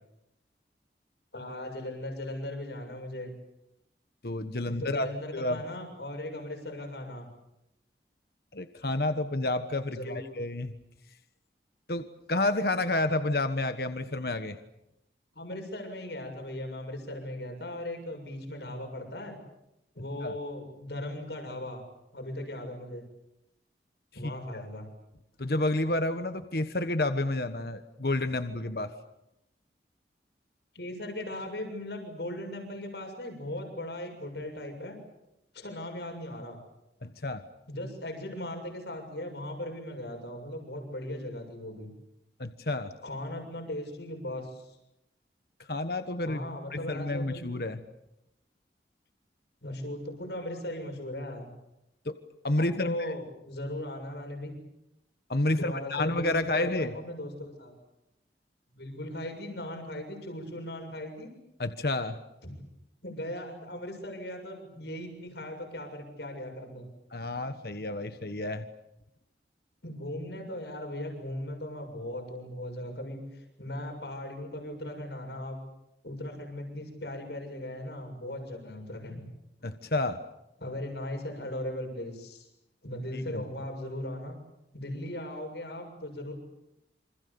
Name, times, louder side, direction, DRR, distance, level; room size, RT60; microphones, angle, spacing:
voice 1, 1.3-3.3 4.7-7.3 9.9-10.2 15.3-19.4 20.0-21.8 22.1-23.0 24.1-24.9 30.7-35.0 35.5-36.6 37.7-41.9 43.0-44.7 46.2-47.5 49.6-51.5 52.6-54.6 55.5-57.7 58.7-61.3 62.4-62.5 63.0-66.9 69.8-75.6 76.0-79.2 80.6-82.5 82.8-84.4 84.7-86.3, left 1 dB, 75° left, 4 dB, 7.1 m, -38 dB
voice 2, 4.2-5.1 5.3-5.6 8.5-10.7 11.9-14.6 20.2-20.3 25.4-28.9 37.0-37.4 42.4-42.9 45.7-46.4 46.7-47.8 52.0-52.1 52.4-53.1 55.3-56.9 61.6-62.2 67.1-68.6 79.6-80.2 83.1-83.4, left 2 dB, 60° left, 9 dB, 1.3 m, -30 dB
28.0 x 26.0 x 7.0 m, 0.85 s
head